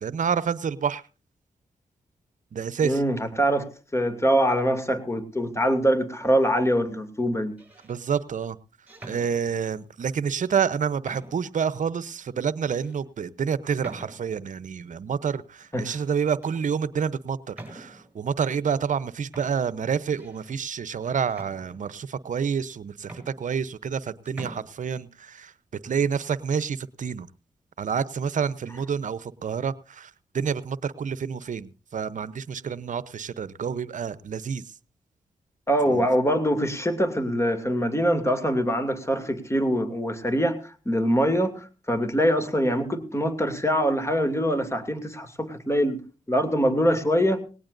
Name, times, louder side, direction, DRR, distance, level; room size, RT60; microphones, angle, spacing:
voice 1, 0.0-1.0 2.5-3.0 7.8-8.6 9.0-25.5 25.8-27.3 27.8-34.6 35.9-36.1, right 7 dB, 60° right, 17 dB, 0.8 m, -28 dB
voice 2, 2.8-7.6 15.7-15.8 35.7-46.0 46.3-47.4, equal, 20° left, 8 dB, 2.6 m, -24 dB
sound 1, 6.2-6.6 7.4-8.0 8.9-9.8 10.5-10.6 11.0-11.6 12.1-12.2 12.8-13.0 13.8-14.5 15.6-16.1 16.4-16.7 17.5-18.2 18.9-19.0 19.3-20.6 21.3-22.1 22.7-22.8 23.0-24.0 24.3-24.6, right 2 dB, 10° right, 6.6 m, -45 dB
19.0 x 18.0 x 2.6 m, 0.34 s
supercardioid pair, 50°, 14 cm